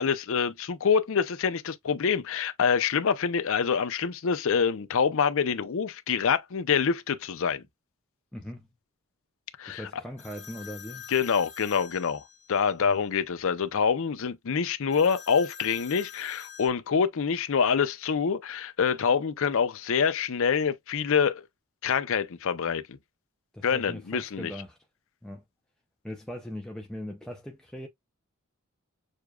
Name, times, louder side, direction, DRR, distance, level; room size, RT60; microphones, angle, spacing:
voice 1, 0.0-7.6 9.6-9.8 11.1-12.2 12.5-21.4 21.8-23.0 23.6-24.5, left 6 dB, 65° left, 0.5 m, -26 dB
voice 2, 8.3-8.7 9.7-11.1 12.8-13.0 23.5-24.8 25.2-25.4 26.0-27.9, equal, 5° left, 0.5 m, -40 dB
sound 1, 10.2-12.7 14.9-16.7, left 8 dB, 35° left, 1.4 m, -46 dB
6.5 x 2.3 x 2.3 m
head